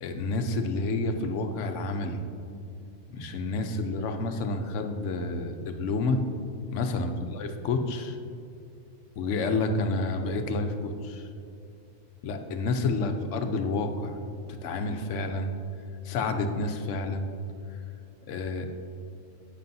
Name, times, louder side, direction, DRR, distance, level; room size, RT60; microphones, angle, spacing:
voice 1, 0.0-2.2 3.1-6.2 6.7-8.2 9.2-11.3 12.2-14.2 14.6-15.5 16.0-17.3 18.3-18.7, left 3 dB, 75° left, 6 dB, 1.0 m, -29 dB
11.0 x 8.5 x 2.7 m, 2.5 s
omnidirectional pair, 1.3 m